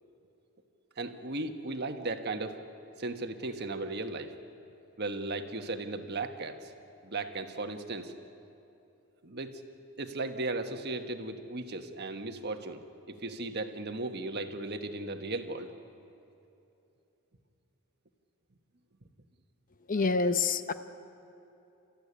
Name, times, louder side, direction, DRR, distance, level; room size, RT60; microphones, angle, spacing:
voice 1, 1.0-2.6 3.0-4.3 5.0-6.7 7.0-8.1 9.2-9.6 10.0-12.8 13.1-15.7, right 2 dB, 45° right, 6 dB, 1.4 m, -36 dB
voice 2, 19.9-20.7, left 4 dB, 35° left, 10 dB, 0.7 m, -27 dB
29.5 x 14.5 x 9.9 m, 2.9 s
head